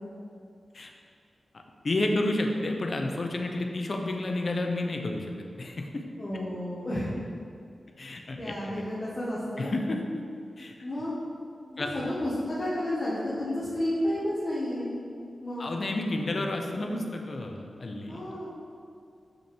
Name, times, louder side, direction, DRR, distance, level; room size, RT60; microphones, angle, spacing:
voice 1, 1.8-6.0 6.3-6.4 8.0-8.8 9.6-10.0 10.6-10.8 11.8-11.9 15.6-18.2, left 2 dB, 50° left, 2 dB, 0.9 m, -31 dB
voice 2, 6.2-7.1 8.4-9.7 10.8-11.1 11.7-14.9 15.4-15.6 18.1-18.5, left 1 dB, 30° left, -9 dB, 1.5 m, -31 dB
7.1 x 6.1 x 4.5 m, 2.4 s
wide cardioid pair, 95°, 0 cm